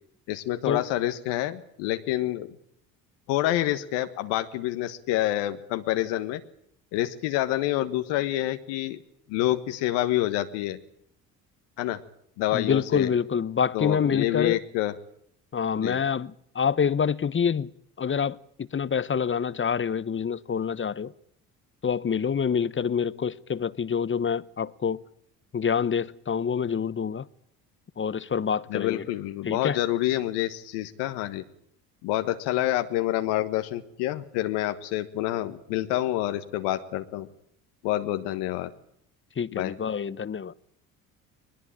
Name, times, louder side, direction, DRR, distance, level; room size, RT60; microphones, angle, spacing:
voice 1, 0.3-2.5 3.3-6.4 6.9-9.0 9.3-10.8 11.8-12.0 12.4-13.1 13.7-14.9 15.8-16.0 28.7-31.4 32.0-37.3 37.8-38.7 39.5-39.8, left 14 dB, 80° left, 1.4 m, -27 dB
voice 2, 12.5-14.6 15.5-17.7 18.0-21.1 21.8-25.0 25.5-27.3 28.0-29.1 29.4-29.8 39.4-40.5, left 7 dB, 30° left, 0.9 m, -27 dB
21.0 x 20.5 x 8.8 m
supercardioid pair, 65°, 40 cm